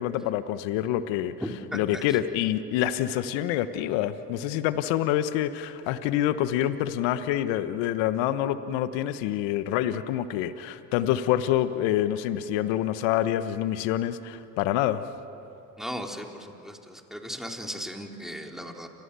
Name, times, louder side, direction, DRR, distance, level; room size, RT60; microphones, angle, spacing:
voice 1, 0.0-1.3 1.7-15.0, left 12 dB, 70° left, 12 dB, 1.2 m, -26 dB
voice 2, 1.4-2.0 15.8-18.9, equal, ahead, 2 dB, 3.8 m, -37 dB
29.5 x 26.5 x 6.9 m, 2.7 s
hypercardioid pair, 60°, 46 cm